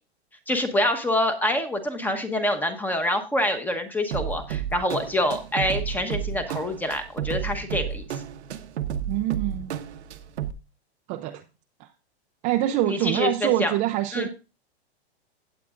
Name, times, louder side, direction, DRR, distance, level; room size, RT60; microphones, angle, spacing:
voice 1, 0.5-8.0 12.9-13.7 14.1-14.3, left 1 dB, 5° left, 7 dB, 1.0 m, -26 dB
sound 1, 4.1-10.5, right 9 dB, 90° right, 1.1 m, -32 dB
voice 2, 9.1-9.7 11.1-11.4 11.8-11.9 12.4-14.3, right 14 dB, 25° right, 6 dB, 0.5 m, -25 dB
16.0 x 8.5 x 2.5 m, 0.29 s
hypercardioid pair, 145°, 32 cm